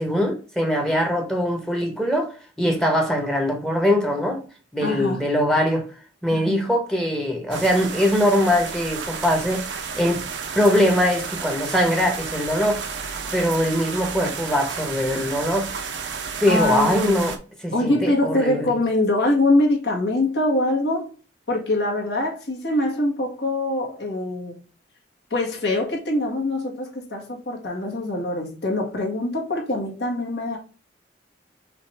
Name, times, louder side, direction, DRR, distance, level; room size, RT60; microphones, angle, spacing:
voice 1, 0.0-2.3 2.6-4.4 4.7-5.9 6.2-9.6 10.0-10.3 10.5-12.9 13.3-15.8 16.4-17.4 17.6-18.7, equal, 5° left, 0.9 m, -22 dB
voice 2, 4.8-5.3 6.3-6.7 16.5-17.4 17.7-21.1 21.5-24.6 25.3-30.6, left 2 dB, 70° left, 1.6 m, -23 dB
sound 1, 7.5-17.4, right 5 dB, 80° right, 0.8 m, -32 dB
5.8 x 2.6 x 3.3 m
head